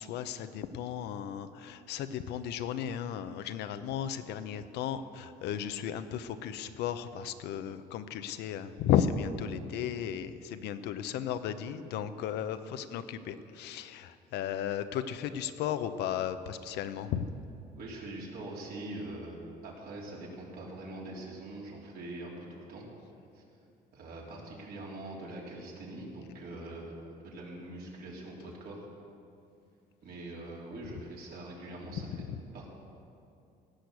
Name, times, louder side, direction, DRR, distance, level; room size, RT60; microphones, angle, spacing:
voice 1, 0.0-17.2 32.1-32.4, left 9 dB, 80° left, 10 dB, 0.8 m, -34 dB
voice 2, 17.7-19.4 19.6-22.8 23.3-23.4 23.9-26.9 27.2-28.9 30.0-32.2 32.5-32.7, right 2 dB, 65° right, -3 dB, 3.4 m, -43 dB
17.0 x 6.4 x 8.3 m, 2.6 s
cardioid pair, 110°, 17 cm